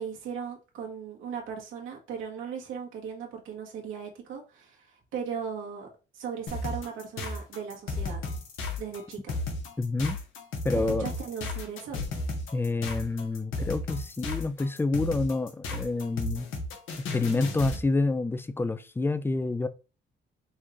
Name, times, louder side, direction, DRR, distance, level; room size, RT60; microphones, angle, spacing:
voice 1, 0.0-5.9 6.1-8.2 8.8-9.4 11.0-12.0, right 7 dB, 85° right, 1.3 m, -37 dB
sound 1, 6.5-17.8, left 3 dB, 85° left, 1.1 m, -34 dB
voice 2, 9.8-10.2 10.6-11.1 12.5-16.5 17.1-19.7, left 3 dB, 10° left, 0.4 m, -28 dB
5.5 x 2.4 x 3.1 m
cardioid pair, 90°, 20 cm